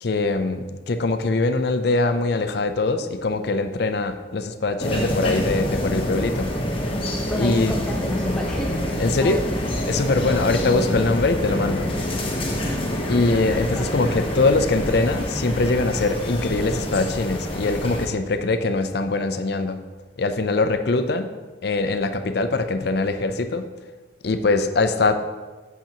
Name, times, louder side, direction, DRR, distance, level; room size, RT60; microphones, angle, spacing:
voice 1, 0.0-6.5 7.4-7.7 9.0-9.4 9.9-11.9 13.1-19.8 20.2-21.3 21.6-23.7 24.2-25.1, left 3 dB, 55° left, 9 dB, 0.5 m, -22 dB
sound 1, 4.8-18.1, left 1 dB, 30° left, 1.0 m, -26 dB
voice 2, 7.3-8.8 9.2-9.7 10.2-11.0 13.7-14.0, equal, 5° left, -2 dB, 0.5 m, -32 dB
8.0 x 7.2 x 2.9 m, 1.3 s
head